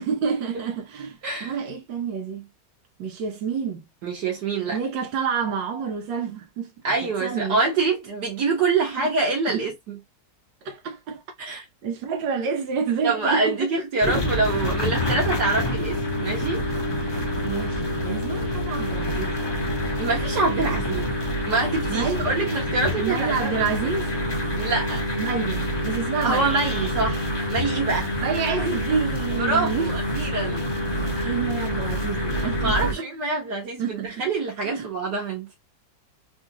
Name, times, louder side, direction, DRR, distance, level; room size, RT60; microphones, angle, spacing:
voice 1, 0.0-2.5 3.0-3.8 4.7-6.7 7.0-7.6 9.0-9.1 9.5-9.6 10.6-13.7 13.9-14.2 14.6-14.7 17.4-19.8 21.9-22.3 23.0-24.1 25.2-26.5 28.2-29.9 30.9-33.1 33.8-34.1 34.6-34.9, right 6 dB, 90° right, 1.5 m, -29 dB
voice 2, 4.0-4.8 6.8-10.0 11.4-11.6 13.0-16.6 20.0-21.1 21.5-23.7 24.6-25.0 26.2-28.1 29.3-30.6 31.1-31.4 32.6-35.5, right 3 dB, 70° right, 1.6 m, -25 dB
sound 1, 14.0-32.9, left 1 dB, 20° left, 0.6 m, -27 dB
3.6 x 2.4 x 2.8 m
omnidirectional pair, 1.9 m